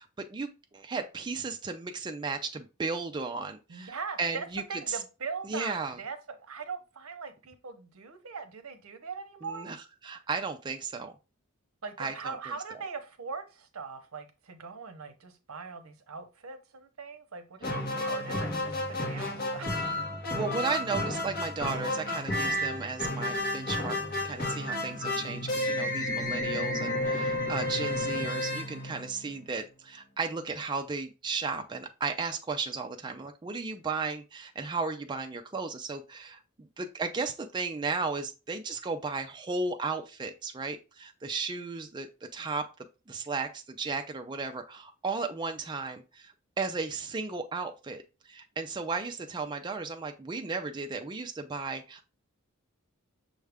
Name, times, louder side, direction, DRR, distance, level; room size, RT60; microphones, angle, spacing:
voice 1, 0.0-5.0 5.4-6.0 9.4-11.1 12.0-12.4 17.6-17.8 20.3-24.0 24.2-42.7 43.1-52.1, right 4 dB, 20° right, 0.4 m, -35 dB
voice 2, 3.7-4.4 4.7-9.7 11.8-20.1, right 5 dB, 80° right, 0.7 m, -41 dB
sound 1, 17.6-29.5, left 1 dB, 45° left, 1.3 m, -32 dB
6.3 x 2.4 x 3.4 m
head